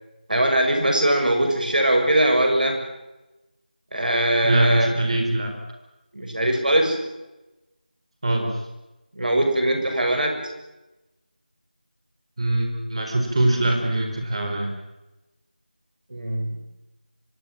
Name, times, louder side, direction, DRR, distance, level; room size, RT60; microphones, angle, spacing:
voice 1, 0.3-2.8 3.9-4.9 6.1-7.0 9.1-10.4 16.1-16.6, right 1 dB, 60° right, 4 dB, 7.0 m, -21 dB
voice 2, 4.4-5.5 8.2-8.6 12.4-14.7, right 1 dB, 35° right, 4 dB, 4.4 m, -23 dB
25.0 x 20.5 x 7.6 m, 1.0 s
figure-of-eight pair, 170°, 5 cm